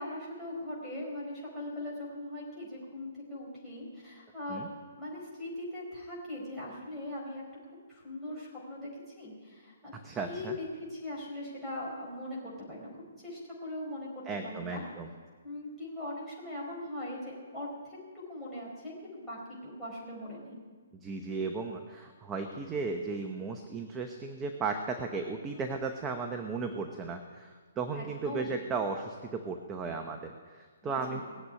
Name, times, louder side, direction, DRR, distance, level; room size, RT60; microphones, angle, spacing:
voice 1, 0.0-4.6 5.0-7.4 7.9-9.9 10.2-14.8 15.4-20.6 25.5-25.7 27.9-28.6 30.8-31.2, left 1 dB, 5° left, -8 dB, 4.8 m, -40 dB
voice 2, 10.0-10.6 14.3-15.1 21.0-31.2, right 4 dB, 15° right, 4 dB, 0.8 m, -35 dB
19.0 x 8.0 x 9.7 m, 1.5 s
hypercardioid pair, 165°, 0 cm